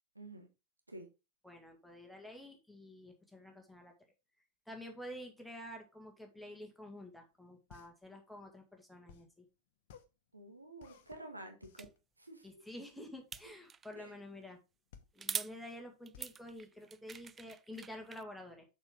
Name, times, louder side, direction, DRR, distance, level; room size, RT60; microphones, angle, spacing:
voice 1, 0.1-0.5 0.9-1.1 10.3-11.9 12.2-12.5 13.9-14.1, right 2 dB, 85° right, 4 dB, 1.5 m, -50 dB
voice 2, 1.4-3.9 4.7-9.4 12.4-14.6 15.2-18.7, left 1 dB, ahead, 2 dB, 2.0 m, -49 dB
sound 1, 7.3-17.6, left 8 dB, 55° left, 1.1 m, -60 dB
sound 2, 11.8-11.9 13.3-13.9 15.2-15.5 16.1-18.2, right 6 dB, 20° right, 0.3 m, -43 dB
6.8 x 6.0 x 3.7 m, 0.28 s
figure-of-eight pair, 90°, 0 cm